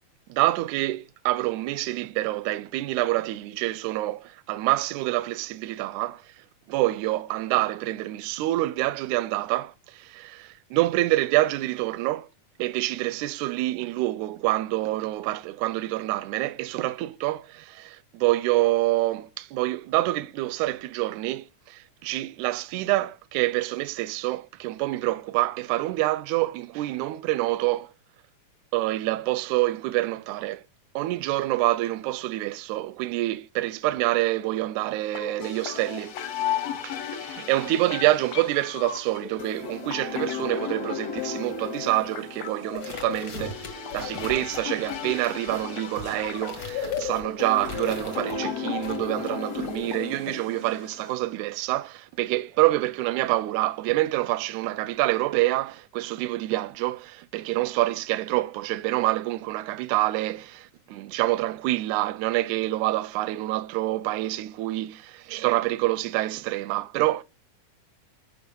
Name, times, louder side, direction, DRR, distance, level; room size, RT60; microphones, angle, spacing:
voice 1, 0.3-6.2 6.7-12.3 12.6-27.9 28.7-30.6 31.0-36.1 36.8-36.9 37.4-64.9 65.3-67.2, right 17 dB, 80° right, 1.8 m, -27 dB
sound 1, 35.1-51.1, left 7 dB, 65° left, 1.8 m, -34 dB
sound 2, 42.7-48.4 48.8-50.0, left 2 dB, 40° left, 1.6 m, -42 dB
7.1 x 5.4 x 5.2 m
omnidirectional pair, 3.7 m